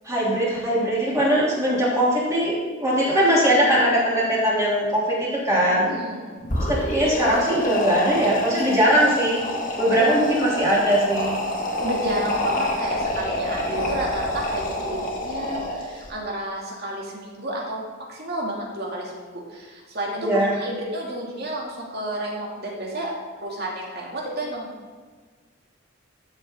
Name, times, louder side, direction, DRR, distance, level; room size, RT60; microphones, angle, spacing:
voice 1, 0.0-2.6 2.8-5.9 6.7-9.4 9.8-11.3 20.1-20.6, equal, 15° right, -6 dB, 3.2 m, -20 dB
voice 2, 5.8-6.4 9.9-10.2 11.8-17.8 18.1-23.1 23.4-24.7, right 1 dB, 55° right, -2 dB, 2.6 m, -31 dB
sound 1, 6.4-16.1, left 1 dB, 45° left, 2.0 m, -28 dB
13.0 x 7.3 x 3.8 m, 1.5 s
head